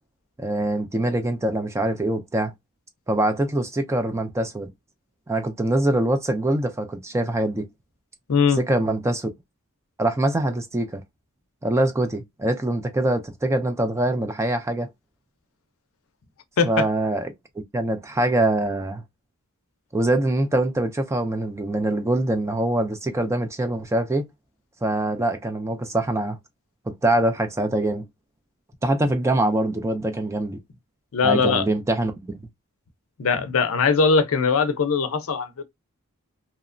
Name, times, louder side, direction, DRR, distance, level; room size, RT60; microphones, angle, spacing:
voice 1, 0.4-2.5 3.1-4.7 5.3-7.7 8.6-9.3 10.0-11.0 11.6-14.9 16.6-17.3 17.7-19.0 19.9-24.3 24.8-26.4 27.0-28.0 28.8-30.6 31.2-32.4, right 1 dB, 15° right, 0.3 m, -24 dB
voice 2, 8.3-8.6 16.6-16.9 31.1-31.6 33.2-35.6, left 5 dB, 65° left, 0.5 m, -20 dB
2.8 x 2.1 x 2.5 m
head